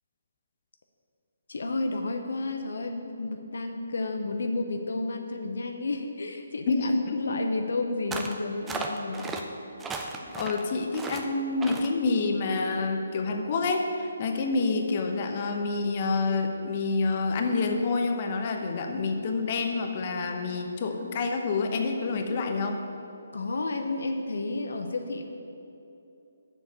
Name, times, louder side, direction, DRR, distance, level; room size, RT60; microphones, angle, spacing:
voice 1, 1.5-9.3 23.3-25.2, left 3 dB, 75° left, 5 dB, 0.7 m, -31 dB
voice 2, 6.7-7.4 9.9-10.0 10.4-22.8, left 3 dB, 40° left, 4 dB, 0.9 m, -28 dB
sound 1, 8.1-8.4 8.7-9.4 9.8-10.6 10.9-11.3 11.6-11.9, right 4 dB, 10° right, 0.5 m, -35 dB
7.2 x 5.7 x 7.4 m, 2.8 s
hypercardioid pair, 155°, 0 cm